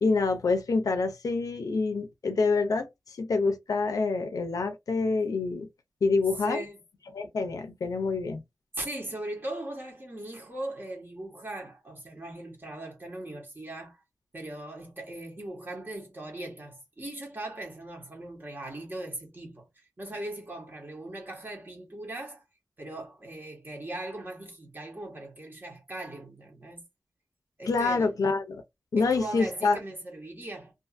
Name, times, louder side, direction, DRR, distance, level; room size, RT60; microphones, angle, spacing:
voice 1, 0.0-5.7 6.0-6.6 7.1-8.4 27.7-28.6 28.9-29.8, left 4 dB, 70° left, 0.5 m, -27 dB
voice 2, 6.4-6.8 8.8-14.0 14.3-22.4 22.8-26.8 27.6-28.1 29.0-30.7, right 1 dB, 35° right, 1.1 m, -39 dB
2.5 x 2.5 x 2.4 m
wide cardioid pair, 115°, 6 cm